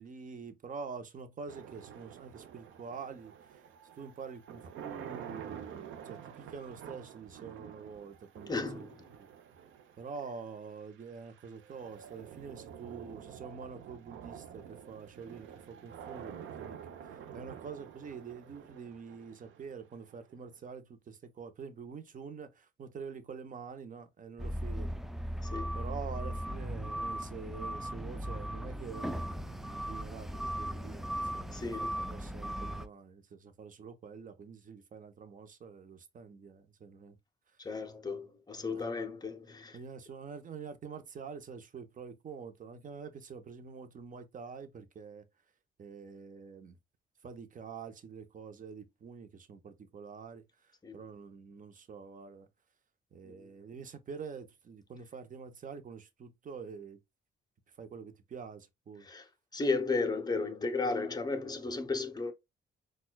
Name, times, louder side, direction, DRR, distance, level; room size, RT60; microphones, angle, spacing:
voice 1, 0.0-3.3 4.0-8.9 10.0-16.8 17.3-25.0 25.7-37.2 38.7-38.8 39.7-45.2 45.8-46.8 47.2-50.4 50.9-52.5 53.1-57.0 57.8-59.0, right 5 dB, 40° right, 0.7 m, -46 dB
sound 1, 1.5-20.5, right 8 dB, 80° right, 0.6 m, -49 dB
voice 2, 8.5-9.1 25.4-25.7 31.5-32.0 37.6-39.8 50.8-51.0 53.2-53.3 59.0-59.3 59.5-62.3, left 3 dB, 20° left, 0.7 m, -34 dB
sound 2, 24.4-32.9, equal, ahead, 0.3 m, -37 dB
4.2 x 2.3 x 2.2 m
cardioid pair, 90°, 20 cm